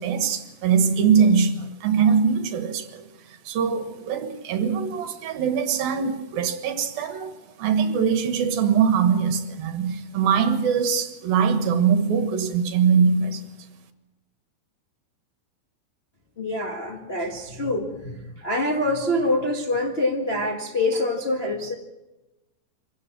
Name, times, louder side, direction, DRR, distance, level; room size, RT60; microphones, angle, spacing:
voice 1, 0.0-13.6, right 6 dB, 70° right, 3.1 m, -22 dB
voice 2, 16.4-21.7, left 1 dB, 80° left, 0.5 m, -25 dB
25.5 x 17.0 x 6.1 m
omnidirectional pair, 4.6 m